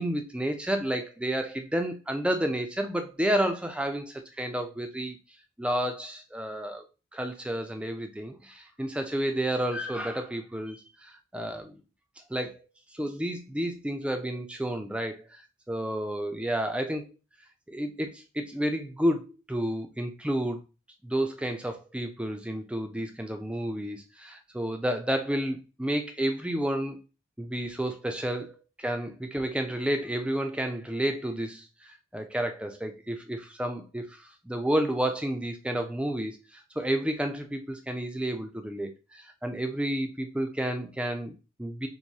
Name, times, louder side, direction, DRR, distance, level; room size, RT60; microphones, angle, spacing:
voice 1, 0.0-5.2 5.6-6.8 7.1-11.8 12.3-12.6 12.9-15.4 15.7-17.1 17.7-20.6 21.0-27.0 27.4-41.9, right 1 dB, 5° right, 5 dB, 0.4 m, -31 dB
4.6 x 2.7 x 2.7 m, 0.31 s
head